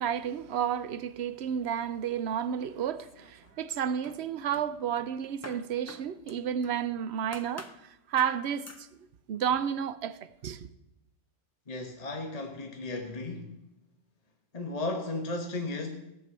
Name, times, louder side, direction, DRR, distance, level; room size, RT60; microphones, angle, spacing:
voice 1, 0.0-8.9 9.3-10.7, right 8 dB, 70° right, 0.9 m, -31 dB
sound 1, 2.9-3.7 4.0-6.8 7.3-7.8 8.2-8.4 8.7-8.9, left 2 dB, 20° left, 0.5 m, -48 dB
voice 2, 11.7-13.6 14.5-15.9, left 2 dB, 35° left, 1.2 m, -35 dB
16.5 x 6.0 x 7.5 m
omnidirectional pair, 1.2 m